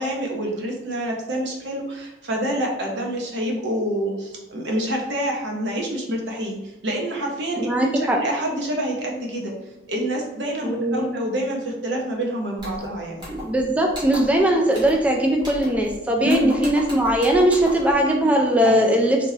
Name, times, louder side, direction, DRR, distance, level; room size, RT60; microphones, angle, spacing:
voice 1, 0.0-6.6 6.8-9.5 9.9-13.3 16.2-16.5 18.6-19.0, right 1 dB, 80° right, -1 dB, 0.9 m, -27 dB
voice 2, 7.6-8.2 10.6-11.1 13.3-19.2, right 1 dB, 10° right, 0 dB, 0.3 m, -20 dB
sound 1, 12.6-12.9 13.2-13.6 13.9-14.4 14.7-15.0 15.4-16.0 16.3-17.9, equal, 25° right, 1.2 m, -37 dB
3.4 x 3.2 x 2.8 m, 1.0 s
head